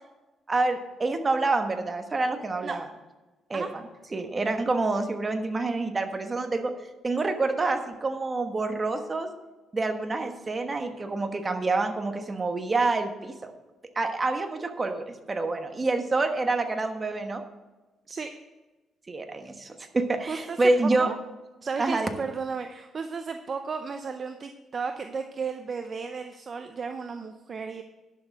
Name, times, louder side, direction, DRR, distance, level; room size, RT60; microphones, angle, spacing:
voice 1, 0.5-2.9 3.5-3.8 4.1-6.7 7.0-9.3 9.7-13.5 13.9-17.4 19.1-21.1 21.8-22.1, right 3 dB, 30° right, 6 dB, 1.3 m, -27 dB
voice 2, 20.3-21.2 21.6-27.8, right 5 dB, 45° right, 7 dB, 0.6 m, -34 dB
11.0 x 6.8 x 6.1 m, 1.1 s
cardioid pair, 90°, 0 cm